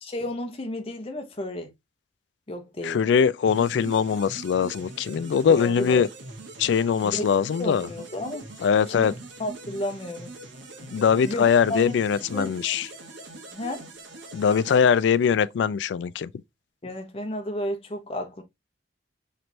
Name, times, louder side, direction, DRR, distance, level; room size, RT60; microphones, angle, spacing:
voice 1, 0.0-1.7 2.5-3.0 5.5-6.0 7.0-7.3 7.6-8.5 8.9-9.1 9.4-10.3 11.2-11.9 12.3-12.5 13.5-13.9 16.8-18.4, left 1 dB, 30° left, 0.7 m, -32 dB
voice 2, 2.8-6.1 6.6-7.9 8.6-9.1 10.9-12.9 14.3-16.3, left 7 dB, 70° left, 0.3 m, -22 dB
sound 1, 3.5-15.5, right 2 dB, 90° right, 1.0 m, -43 dB
4.4 x 3.2 x 2.6 m
head